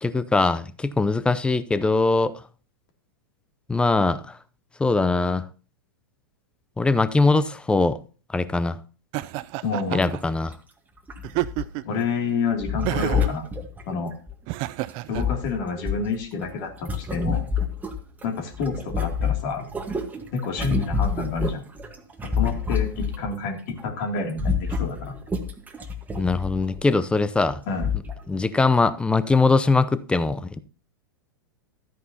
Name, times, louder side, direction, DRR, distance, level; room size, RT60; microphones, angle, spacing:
voice 1, 0.0-2.4 3.7-4.4 4.8-5.5 6.8-8.0 8.3-8.8 9.9-10.6 26.2-27.6 28.3-30.6, left 3 dB, 10° left, 0.6 m, -21 dB
Laughter, 9.1-10.2 11.2-12.0 12.9-13.4 14.5-15.2, right 18 dB, 40° right, 0.4 m, -29 dB
voice 2, 9.6-10.1 11.8-13.5 13.9-14.1 15.1-17.5 18.2-19.7 20.3-21.6 22.2-25.2 27.7-27.9, left 4 dB, 55° left, 2.6 m, -29 dB
sound 1, 10.0-10.2 10.5-10.6 11.1-12.0 12.6-14.4 14.9-18.3 18.5-23.4 23.7-23.9 24.2-26.9 27.5-27.6 27.8-28.2 28.7-28.8, left 5 dB, 15° right, 1.4 m, -28 dB
13.0 x 9.2 x 2.8 m
hypercardioid pair, 105°, 13 cm